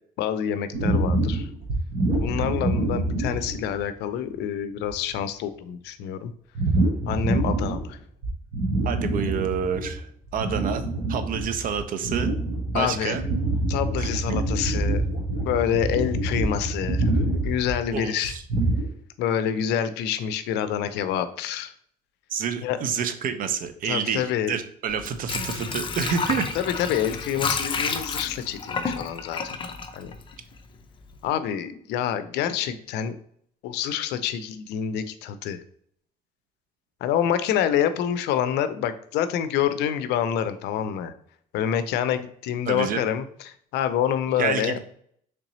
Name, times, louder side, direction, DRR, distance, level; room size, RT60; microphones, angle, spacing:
voice 1, 0.2-1.5 2.2-6.3 7.1-8.0 12.7-13.2 13.7-15.0 15.4-18.4 19.2-21.7 22.6-22.8 23.8-24.6 26.6-29.6 29.9-30.2 31.2-33.2 33.6-35.6 37.0-41.1 41.5-44.8, left 9 dB, 85° left, 12 dB, 0.5 m, -27 dB
sound 1, 0.7-3.8 4.3-4.4 4.8-5.1 6.5-7.9 8.2-9.9 10.2-18.9, right 2 dB, 70° right, 1.3 m, -26 dB
voice 2, 8.8-12.3 12.7-13.2 14.0-14.4 17.9-18.4 22.3-26.6 42.6-43.1 44.4-44.8, right 7 dB, 55° right, 9 dB, 0.6 m, -29 dB
Water / Sink (filling or washing), 24.9-30.8 31.1-31.2, left 5 dB, 30° left, 0.5 m, -30 dB
3.8 x 3.3 x 3.0 m, 0.65 s
cardioid pair, 110°, 17 cm